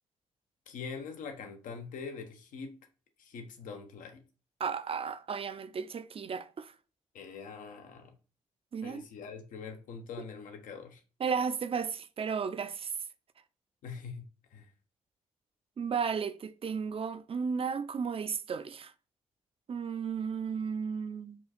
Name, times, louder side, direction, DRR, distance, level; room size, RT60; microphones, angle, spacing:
voice 1, 0.7-2.8 3.2-4.2 7.1-8.2 8.8-11.0 13.8-14.7, left 5 dB, 80° left, 0.8 m, -43 dB
voice 2, 4.6-6.7 8.7-9.0 11.2-12.9 15.8-18.9 19.7-21.4, right 6 dB, 45° right, 0.5 m, -34 dB
4.5 x 2.4 x 4.2 m
supercardioid pair, 50°, 13 cm